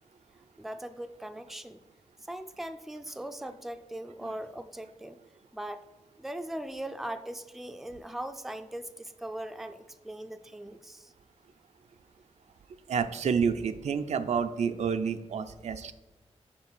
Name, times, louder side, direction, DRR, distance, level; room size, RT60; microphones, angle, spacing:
voice 1, 0.6-1.8 2.2-5.2 5.5-5.8 6.2-11.1, right 1 dB, ahead, 9 dB, 0.4 m, -40 dB
voice 2, 12.9-15.9, right 6 dB, 75° right, 9 dB, 0.4 m, -29 dB
6.0 x 4.0 x 6.0 m, 1.1 s
wide cardioid pair, 105°, 12 cm